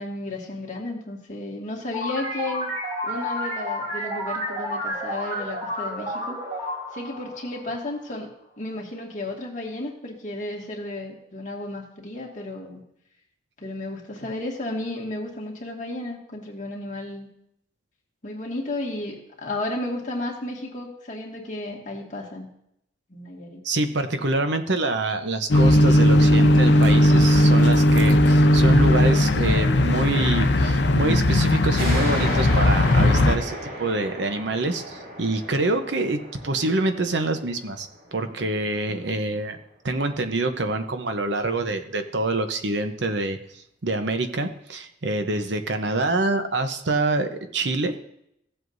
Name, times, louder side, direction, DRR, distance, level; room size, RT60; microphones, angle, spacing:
voice 1, 0.0-2.7 3.0-6.4 6.9-8.3 8.6-12.8 13.6-17.3 18.2-22.5 23.1-23.6, left 2 dB, 40° left, -2 dB, 2.0 m, -33 dB
sound 1, 1.9-8.2, equal, 30° right, 4.7 m, -31 dB
voice 2, 23.6-39.6 39.8-43.4 43.8-48.0, right 2 dB, 65° right, 7 dB, 0.9 m, -26 dB
sound 2, 25.5-33.4, left 1 dB, 60° left, 0.7 m, -17 dB
sound 3, 31.8-38.9, equal, 50° right, 2.6 m, -35 dB
16.0 x 7.8 x 2.7 m, 0.75 s
head